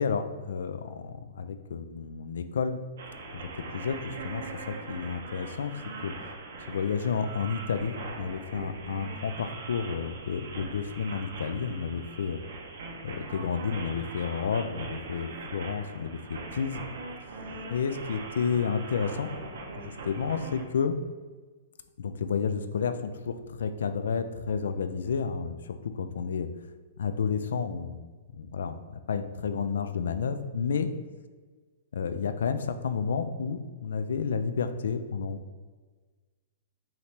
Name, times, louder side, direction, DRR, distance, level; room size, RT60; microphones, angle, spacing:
voice 1, 0.0-2.8 3.4-5.7 6.0-6.1 6.7-12.4 13.0-16.8 17.7-19.3 20.1-21.0 22.0-26.5 27.0-28.1 28.3-30.9 31.9-35.6, left 6 dB, 80° left, 10 dB, 0.3 m, -31 dB
sound 1, 3.0-20.6, right 3 dB, 70° right, 0.7 m, -41 dB
5.0 x 3.0 x 2.8 m, 1.4 s
hypercardioid pair, 160°, 0 cm